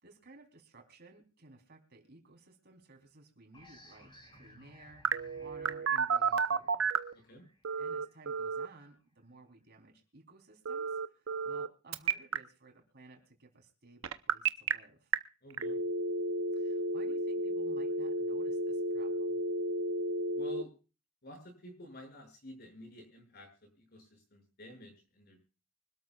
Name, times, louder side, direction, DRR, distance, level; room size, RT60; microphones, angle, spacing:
voice 1, 0.0-6.7 7.8-15.1 16.5-19.4, right 2 dB, 55° right, 3 dB, 3.7 m, -57 dB
sound 1, 3.5-8.9, left 1 dB, 25° left, 6.8 m, -60 dB
Telephone, 5.0-7.1 7.6-8.7 10.7-11.7 11.9-12.4 14.0-14.7 15.1-15.2 15.6-20.6, right 3 dB, 70° right, 0.8 m, -32 dB
voice 2, 7.1-7.5 15.4-15.8 20.3-20.7 21.2-25.4, equal, 50° left, 2 dB, 6.7 m, -52 dB
25.0 x 12.5 x 2.4 m, 0.35 s
head